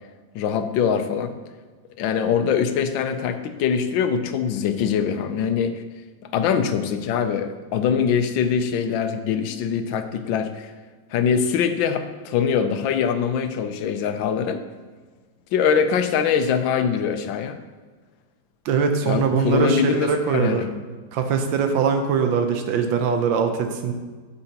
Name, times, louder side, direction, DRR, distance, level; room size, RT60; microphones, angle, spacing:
voice 1, 0.3-1.3 2.0-5.8 6.3-10.7 11.1-14.6 15.5-17.6 19.0-20.7, left 7 dB, 80° left, 8 dB, 1.4 m, -23 dB
voice 2, 18.6-20.6 21.1-23.9, right 6 dB, 85° right, 6 dB, 1.5 m, -22 dB
8.4 x 7.6 x 2.9 m, 1.4 s
omnidirectional pair, 2.1 m